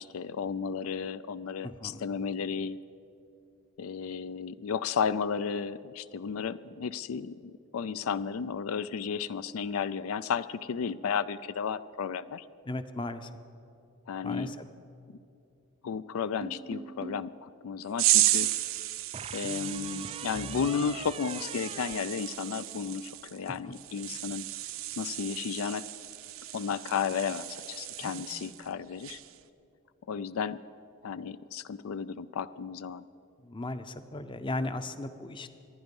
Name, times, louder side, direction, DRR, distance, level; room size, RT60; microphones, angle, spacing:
voice 1, 0.0-2.8 3.8-12.4 14.1-14.5 15.8-18.6 19.3-24.4 25.0-25.9 26.5-29.2 30.1-30.6 31.0-33.1, left 6 dB, 85° left, 16 dB, 0.4 m, -33 dB
voice 2, 1.6-2.0 12.7-13.3 14.2-14.6 23.5-23.7 28.0-28.2 33.4-35.5, left 2 dB, 25° left, 10 dB, 0.6 m, -36 dB
sound 1, 16.4-17.3 19.1-22.9, right 4 dB, 25° right, 0.4 m, -42 dB
sound 2, 18.0-28.7 29.0-29.4, right 14 dB, 70° right, 0.6 m, -33 dB
25.0 x 10.5 x 5.4 m, 2.6 s
head